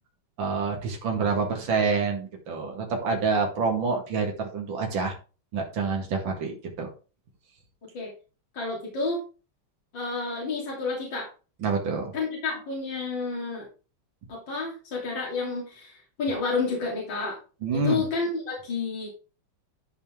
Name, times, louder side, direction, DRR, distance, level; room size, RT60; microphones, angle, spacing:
voice 1, 0.4-5.2 5.5-6.9 11.6-12.1 17.6-18.0, right 4 dB, 70° right, 1 dB, 2.6 m, -27 dB
voice 2, 8.5-9.2 9.9-11.3 12.1-13.7 14.3-17.4 17.7-19.1, left 4 dB, 65° left, -3 dB, 3.6 m, -30 dB
13.0 x 5.4 x 3.6 m, 0.34 s
omnidirectional pair, 2.2 m